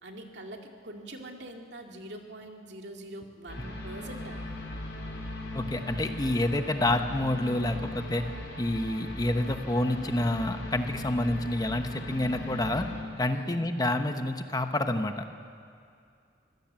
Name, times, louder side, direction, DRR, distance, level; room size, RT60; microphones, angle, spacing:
voice 1, 0.0-4.6 13.3-13.6, right 1 dB, 70° right, 2 dB, 2.3 m, -44 dB
sound 1, 3.5-13.0, left 1 dB, 75° left, 4.2 m, -39 dB
voice 2, 5.5-8.2 8.6-12.8 13.2-15.2, left 1 dB, 20° left, 7 dB, 1.0 m, -28 dB
24.5 x 16.5 x 7.6 m, 2.3 s
head